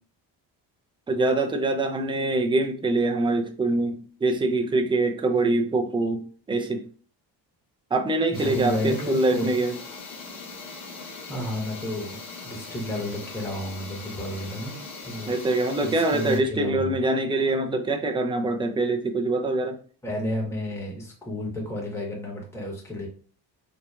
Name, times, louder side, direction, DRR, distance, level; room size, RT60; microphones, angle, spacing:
voice 1, 1.1-6.8 7.9-9.8 15.3-19.8, right 2 dB, 10° right, 5 dB, 0.3 m, -24 dB
sound 1, 8.3-16.4, left 4 dB, 80° left, 1.1 m, -40 dB
voice 2, 8.3-9.5 11.0-12.2 12.4-15.4 15.7-16.9 20.0-23.1, left 1 dB, 5° left, -3 dB, 1.1 m, -32 dB
2.9 x 2.3 x 2.3 m, 0.41 s
cardioid pair, 80°, 45 cm